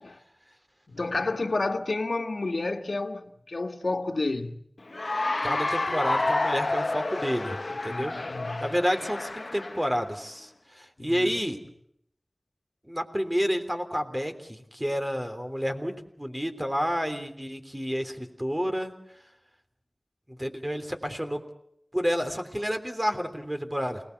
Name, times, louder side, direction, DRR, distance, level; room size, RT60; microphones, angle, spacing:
voice 1, 0.9-4.6 7.9-8.7 11.0-11.3, left 2 dB, 90° left, 1.5 m, -30 dB
Cheering / Applause, 4.9-10.1, left 2 dB, 70° left, 1.3 m, -29 dB
voice 2, 5.4-7.6 7.8-8.2 8.6-11.6 12.8-18.9 20.3-21.5 21.9-24.0, equal, 15° right, 3.4 m, -30 dB
28.5 x 19.5 x 8.1 m
wide cardioid pair, 45°, 0 cm